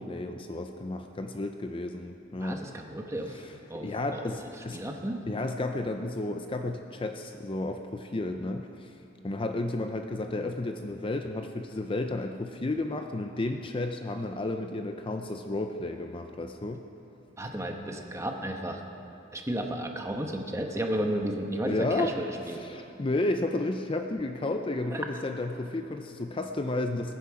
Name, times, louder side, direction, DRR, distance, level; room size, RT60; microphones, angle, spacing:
voice 1, 0.0-2.6 3.3-4.8 5.3-8.9 9.2-16.8 21.7-22.1 22.5-27.1, left 2 dB, 25° left, 5 dB, 0.5 m, -32 dB
voice 2, 2.4-3.4 3.7-5.2 17.4-18.8 19.3-22.6 24.9-25.0, right 1 dB, 15° right, 3 dB, 1.1 m, -33 dB
21.5 x 10.0 x 4.9 m, 2.8 s
head